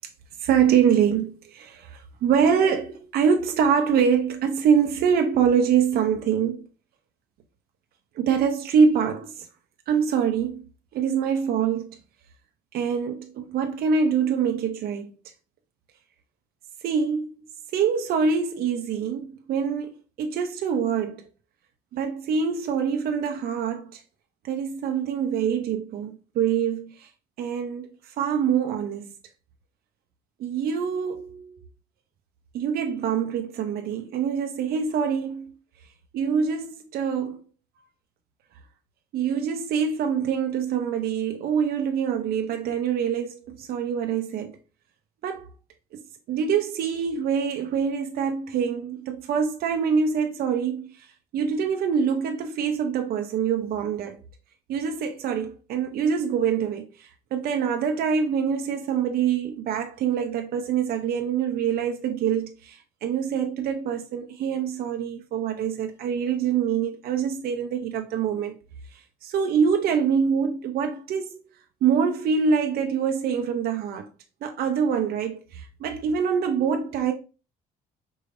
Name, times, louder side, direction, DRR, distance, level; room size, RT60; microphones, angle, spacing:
voice 1, 0.4-6.6 8.2-9.5 9.9-10.6 10.9-12.0 12.7-15.1 16.8-17.3 17.7-21.3 21.9-24.0 24.4-27.1 27.4-27.9 28.2-29.1 30.4-31.5 32.5-35.5 36.1-37.4 39.1-44.6 45.2-45.5 46.3-50.9 51.3-54.2 54.7-68.6 69.2-71.4 71.8-74.1 74.4-77.1, right 7 dB, 65° right, 0.6 m, -25 dB
4.6 x 3.2 x 2.5 m
cardioid pair, 110°, 17 cm